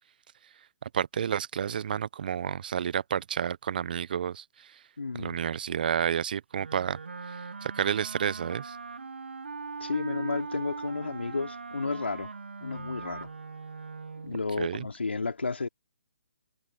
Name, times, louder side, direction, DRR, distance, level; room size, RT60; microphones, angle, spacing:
voice 1, 0.8-4.4 5.2-7.0 7.6-8.8 14.6-14.9, right 8 dB, 50° right, 1.0 m, -30 dB
voice 2, 5.0-5.5 9.8-12.3 12.6-13.3 14.2-15.7, left 4 dB, 75° left, 3.3 m, -32 dB
Wind instrument woodwind instrument, 6.5-14.4, right 4 dB, 75° right, 1.8 m, -40 dB
figure-of-eight pair, 140°, 6 cm